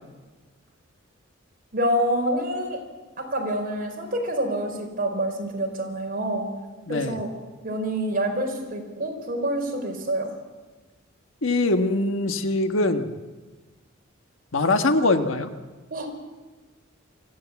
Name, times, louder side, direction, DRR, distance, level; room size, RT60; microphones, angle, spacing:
voice 1, 1.7-2.8 3.2-6.5 6.9-7.3 7.6-10.3 15.9-16.1, right 1 dB, 45° right, 2 dB, 4.8 m, -27 dB
voice 2, 6.9-7.2 11.4-13.1 14.5-15.5, left 2 dB, 70° left, 6 dB, 1.5 m, -22 dB
24.5 x 15.5 x 8.4 m, 1.3 s
head